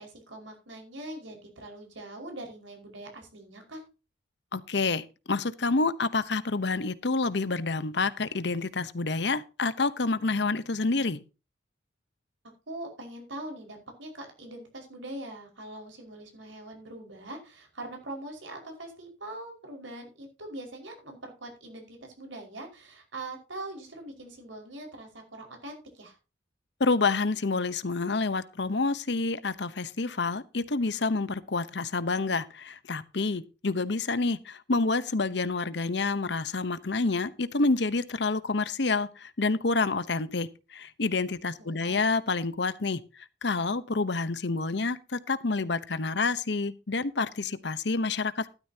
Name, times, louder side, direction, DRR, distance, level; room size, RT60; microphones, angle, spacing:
voice 1, 0.0-3.8 12.7-26.2 41.6-42.0, right 1 dB, 85° right, 5.2 m, -42 dB
voice 2, 4.5-11.2 26.8-43.0 43.4-48.5, left 3 dB, 65° left, 0.9 m, -28 dB
13.0 x 12.5 x 2.8 m
head